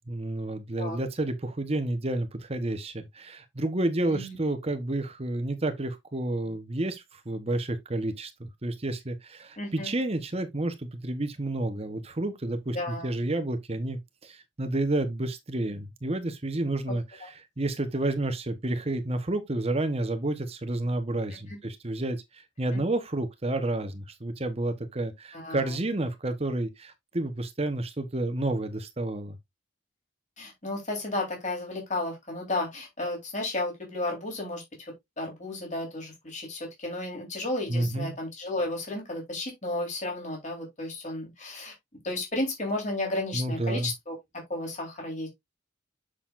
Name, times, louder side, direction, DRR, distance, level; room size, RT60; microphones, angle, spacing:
voice 1, 0.1-29.4 37.7-38.1 43.3-43.9, right 2 dB, 30° right, 1.0 m, -30 dB
voice 2, 9.6-9.9 12.7-13.1 17.2-17.3 21.3-21.6 22.7-22.8 25.3-25.8 30.4-34.6 35.2-41.7 42.0-44.2 44.5-45.3, left 2 dB, 40° left, 3.7 m, -33 dB
7.5 x 6.7 x 2.5 m
head